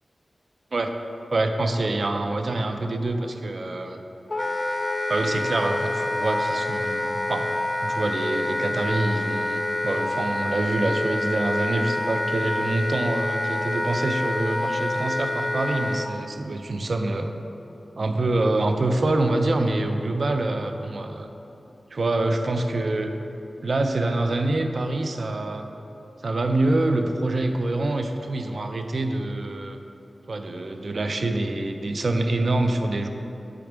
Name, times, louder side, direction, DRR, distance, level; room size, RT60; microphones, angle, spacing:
voice 1, 1.3-4.0 5.1-7.5 7.8-17.3 18.0-21.3 21.9-23.1 23.6-25.7 26.2-29.8 30.3-33.1, right 2 dB, 60° right, 6 dB, 0.4 m, -25 dB
Wind instrument woodwind instrument, 4.3-16.1, left 2 dB, 35° left, 0.3 m, -27 dB
8.3 x 3.6 x 4.9 m, 3.0 s
wide cardioid pair, 80°, 0 cm